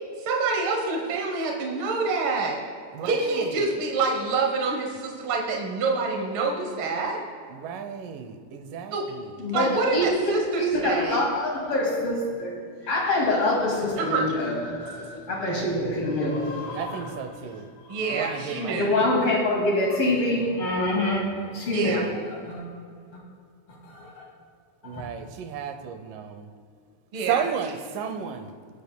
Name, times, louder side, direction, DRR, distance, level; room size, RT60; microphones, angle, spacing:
voice 1, 0.2-2.6 3.0-7.2 8.9-9.0 9.5-11.2 14.0-14.2 17.9-18.9 21.7-22.0 27.1-27.4, right 4 dB, 70° right, 0 dB, 1.2 m, -27 dB
voice 2, 2.9-3.6 7.5-9.4 16.7-17.7 18.1-19.1 21.8-22.2 24.8-26.5 27.3-28.5, right 7 dB, 85° right, 8 dB, 2.4 m, -33 dB
voice 3, 9.4-17.2 17.8-18.2 18.7-22.7 23.8-24.3 24.8-25.0, left 1 dB, 45° left, -2 dB, 2.9 m, -26 dB
24.5 x 8.5 x 2.2 m, 2.2 s
omnidirectional pair, 3.7 m